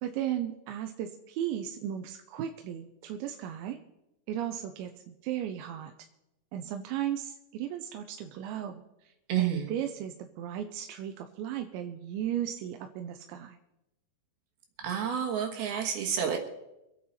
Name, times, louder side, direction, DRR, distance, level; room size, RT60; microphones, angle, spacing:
voice 1, 0.0-3.8 4.3-5.9 6.5-13.6, right 10 dB, 85° right, 5 dB, 3.0 m, -36 dB
voice 2, 9.3-9.7 14.8-16.4, right 8 dB, 65° right, 3 dB, 3.0 m, -29 dB
24.5 x 9.4 x 4.3 m, 0.90 s
omnidirectional pair, 5.2 m